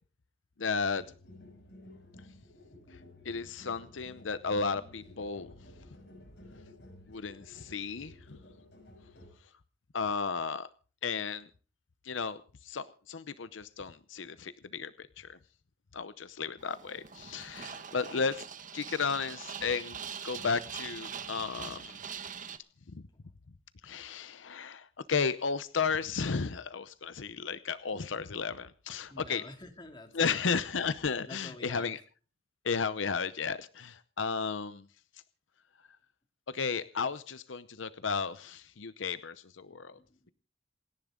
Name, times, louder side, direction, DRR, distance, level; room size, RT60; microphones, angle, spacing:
voice 1, 0.6-1.0 3.2-5.5 7.1-8.1 9.9-10.7 11.0-11.5 12.0-15.4 15.9-18.4 18.7-20.0 20.2-22.0 22.9-23.0 23.8-29.4 30.1-32.0 32.6-34.8 36.5-40.0, left 5 dB, 80° left, 13 dB, 0.7 m, -34 dB
sound 1, 0.9-9.3, left 1 dB, 65° left, 7.0 m, -53 dB
sound 2, 16.6-22.6, right 7 dB, 45° right, 1.1 m, -43 dB
voice 2, 29.1-30.5 31.3-31.9 39.6-40.3, left 2 dB, 25° left, 4 dB, 2.6 m, -49 dB
28.0 x 10.5 x 3.8 m, 0.38 s
head